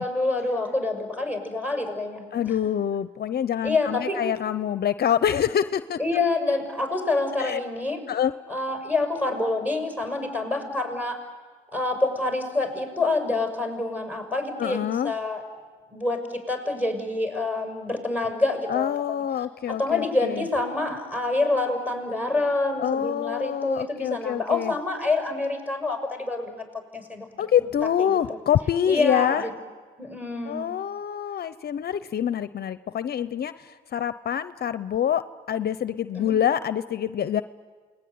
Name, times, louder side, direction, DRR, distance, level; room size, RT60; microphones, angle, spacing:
voice 1, 0.0-2.6 3.6-4.2 6.0-8.0 8.5-11.2 11.7-15.4 15.9-19.2 19.7-26.7 26.9-27.3 27.6-27.7 28.1-28.2 28.9-29.5 30.0-30.7 36.1-36.4, left 2 dB, 10° right, 3 dB, 6.3 m, -27 dB
voice 2, 2.3-6.0 7.4-7.6 8.1-8.3 14.6-15.1 18.7-20.5 22.8-24.7 27.4-29.5 30.5-35.2 35.5-37.4, left 9 dB, 50° left, 13 dB, 0.7 m, -26 dB
28.5 x 20.5 x 9.5 m, 1.5 s
cardioid pair, 90°, 20 cm